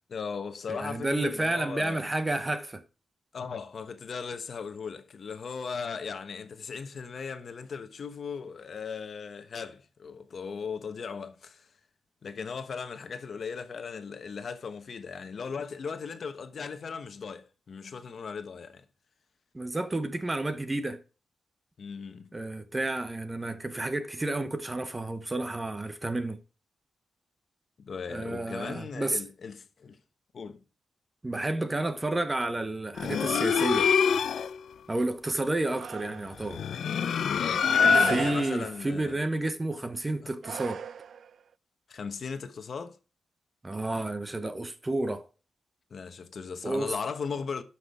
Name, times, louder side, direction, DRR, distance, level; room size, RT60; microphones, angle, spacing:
voice 1, 0.1-2.1 3.3-11.7 12.2-18.8 21.8-22.4 27.8-30.0 30.3-30.6 37.4-39.2 40.2-40.3 41.9-43.0 45.9-47.6, left 5 dB, 55° left, 1.1 m, -38 dB
voice 2, 0.7-2.8 19.5-21.0 22.3-26.4 28.1-29.2 31.2-33.9 34.9-36.6 37.9-40.8 43.6-45.3 46.6-46.9, right 2 dB, 15° right, 1.0 m, -31 dB
sound 1, 33.0-34.6 36.4-38.5, left 7 dB, 75° left, 0.6 m, -25 dB
sound 2, 35.8-36.5 37.5-39.0 40.4-41.4, right 7 dB, 65° right, 0.4 m, -35 dB
12.0 x 6.0 x 4.7 m
wide cardioid pair, 125°, 0 cm